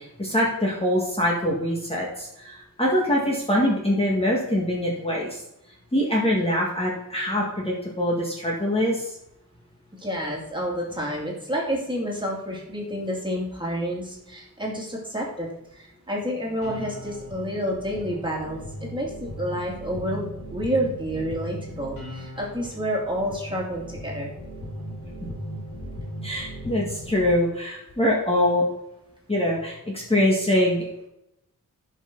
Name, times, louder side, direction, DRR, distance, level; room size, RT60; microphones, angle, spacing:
voice 1, 0.0-5.4 5.9-9.1 26.2-28.6 29.3-30.9, left 1 dB, 15° left, -4 dB, 1.9 m, -24 dB
voice 2, 10.0-24.3, equal, 15° right, -3 dB, 2.6 m, -29 dB
sound 1, 16.6-27.3, equal, 60° left, 3.9 m, -37 dB
16.0 x 5.6 x 4.0 m, 0.87 s
wide cardioid pair, 150°, 33 cm